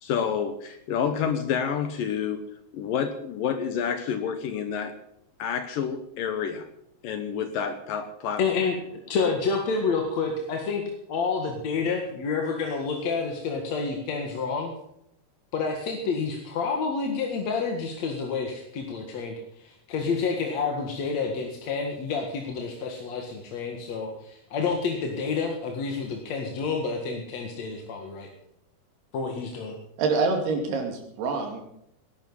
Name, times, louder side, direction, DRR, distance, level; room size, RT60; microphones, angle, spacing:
voice 1, 0.0-2.4 2.7-5.0 5.4-6.7 7.0-8.4, left 7 dB, 70° left, 9 dB, 2.5 m, -29 dB
voice 2, 8.4-14.7 15.5-28.3 29.1-29.7, left 5 dB, 55° left, 2 dB, 2.5 m, -29 dB
voice 3, 30.0-31.6, right 4 dB, 80° right, 2 dB, 4.6 m, -26 dB
19.0 x 12.0 x 5.5 m, 0.76 s
omnidirectional pair, 4.5 m